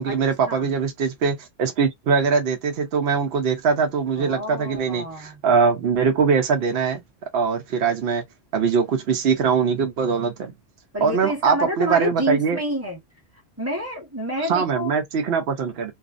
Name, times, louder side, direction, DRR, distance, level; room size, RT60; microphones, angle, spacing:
voice 1, 0.0-7.0 7.3-8.2 8.5-10.5 11.0-12.6 14.4-15.9, right 5 dB, 70° right, 0.8 m, -22 dB
voice 2, 4.2-5.4 10.9-13.0 13.6-14.9, equal, 15° right, 1.0 m, -28 dB
2.5 x 2.0 x 2.4 m
omnidirectional pair, 1.1 m